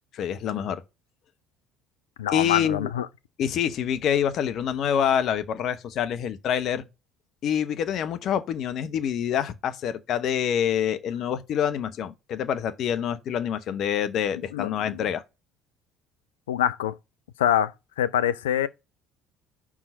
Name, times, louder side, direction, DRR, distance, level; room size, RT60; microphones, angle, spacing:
voice 1, 0.1-0.8 2.3-2.9 3.4-6.9 7.4-15.2, left 9 dB, 55° left, 0.9 m, -26 dB
voice 2, 2.2-3.1 14.5-15.0 16.5-16.9 17.4-17.7 18.0-18.7, left 10 dB, 80° left, 0.4 m, -25 dB
5.6 x 4.9 x 5.0 m
hypercardioid pair, 60°, 0 cm